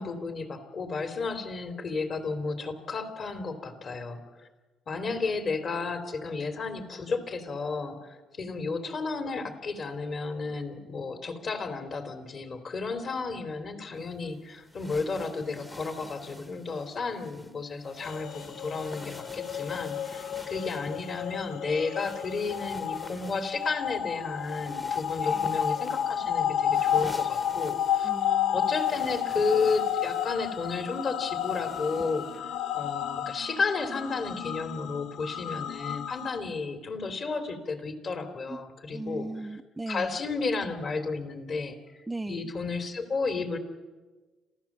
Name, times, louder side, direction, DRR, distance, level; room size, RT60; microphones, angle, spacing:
voice 1, 0.0-4.5 4.9-28.1 28.5-39.3 39.9-42.0 42.3-43.6, left 4 dB, 45° left, 8 dB, 3.1 m, -32 dB
sound 1, 14.0-32.4, left 1 dB, 10° left, 1.2 m, -48 dB
sound 2, 18.0-36.4, left 9 dB, 70° left, 0.8 m, -31 dB
voice 2, 25.2-25.6 28.0-28.7 38.5-38.6 38.9-40.2 42.1-42.5, right 2 dB, 10° right, 13 dB, 0.6 m, -38 dB
26.5 x 15.5 x 7.4 m, 1.3 s
cardioid pair, 110°, 0 cm